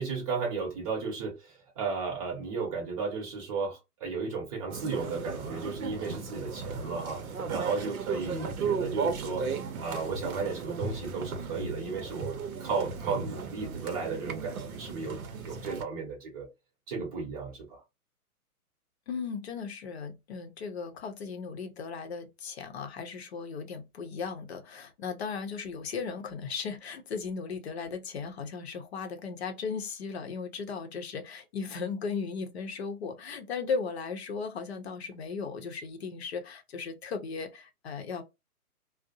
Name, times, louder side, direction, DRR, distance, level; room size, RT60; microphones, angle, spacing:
voice 1, 0.0-7.2 7.5-9.5 9.8-16.5 16.9-17.8, right 4 dB, 25° right, 0.8 m, -34 dB
sound 1, 4.7-15.8, right 5 dB, 65° right, 0.7 m, -35 dB
voice 2, 19.1-38.2, left 5 dB, 45° left, 0.7 m, -36 dB
2.6 x 2.0 x 2.5 m
figure-of-eight pair, 130°, 46 cm